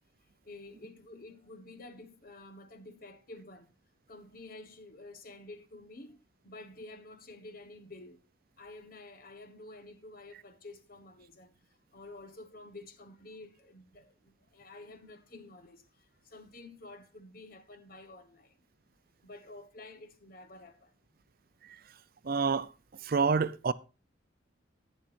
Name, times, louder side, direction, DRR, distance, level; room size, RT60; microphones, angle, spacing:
voice 1, 0.4-3.7 4.1-8.2 8.6-11.6 11.9-18.6 19.2-20.9, left 2 dB, 50° left, 1.3 m, -50 dB
voice 2, 22.2-22.7 23.0-23.7, right 5 dB, 50° right, 0.5 m, -28 dB
14.0 x 10.0 x 2.6 m
head